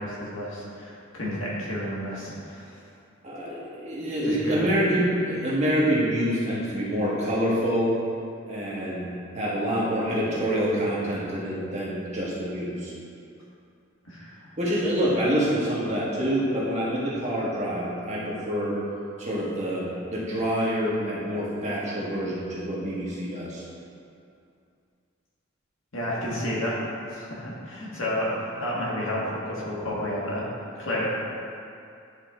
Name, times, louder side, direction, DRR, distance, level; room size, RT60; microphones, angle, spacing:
voice 1, 0.0-2.8 4.3-4.7 14.1-14.5 25.9-26.8 27.1-30.5 30.8-31.1, left 1 dB, 90° left, -6 dB, 1.7 m, -31 dB
voice 2, 3.2-7.9 8.5-12.9 14.6-18.8 19.2-23.6, equal, 35° right, -6 dB, 1.5 m, -26 dB
10.0 x 4.0 x 3.7 m, 2.4 s
head